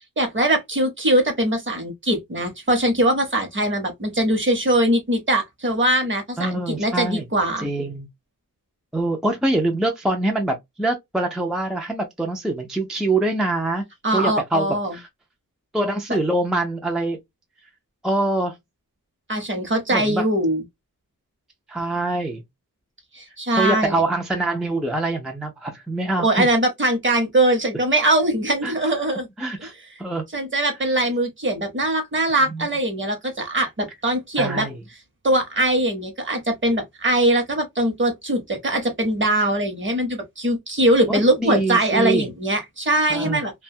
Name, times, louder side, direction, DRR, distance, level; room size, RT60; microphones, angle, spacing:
voice 1, 0.2-7.7 14.0-14.9 19.3-20.6 23.1-24.0 26.2-29.3 30.3-34.7 35.2-43.5, right 1 dB, 35° right, 0.9 m, -21 dB
voice 2, 6.4-7.3 7.6-8.1 8.9-13.8 14.1-14.7 14.9-15.1 15.7-17.2 18.0-18.6 19.9-20.2 21.7-22.4 23.6-26.5 28.6-28.7 29.4-29.7 30.0-30.2 32.5-32.7 34.4-34.8 41.1-42.3 43.1-43.4, right 2 dB, ahead, 0.4 m, -24 dB
2.4 x 2.2 x 2.6 m
wide cardioid pair, 145°, 33 cm